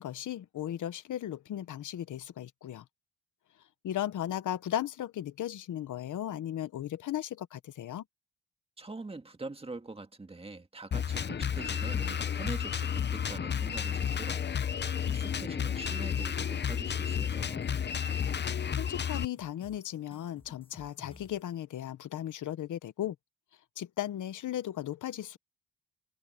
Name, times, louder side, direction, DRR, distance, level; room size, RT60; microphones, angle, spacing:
voice 1, 0.0-2.8 3.8-8.0 18.8-23.2 23.8-25.4, left 11 dB, 80° left, 1.0 m, -36 dB
voice 2, 8.8-14.4 15.1-17.6, right 3 dB, 20° right, 1.9 m, -44 dB
Drum kit, 10.9-19.2, left 8 dB, 35° left, 0.7 m, -32 dB
sound 1, 13.6-21.5, left 2 dB, 15° left, 6.7 m, -55 dB
cardioid pair, 115°, 30 cm